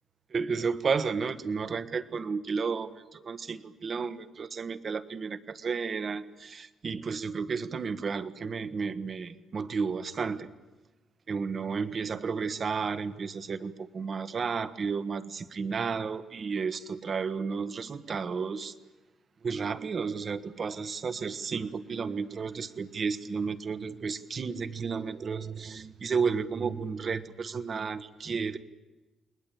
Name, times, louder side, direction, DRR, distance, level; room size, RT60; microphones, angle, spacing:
voice 1, 0.3-10.5 11.3-18.7 19.4-28.6, right 5 dB, 45° right, 12 dB, 1.5 m, -32 dB
29.5 x 20.5 x 8.8 m, 1.2 s
cardioid pair, 90°, 0 cm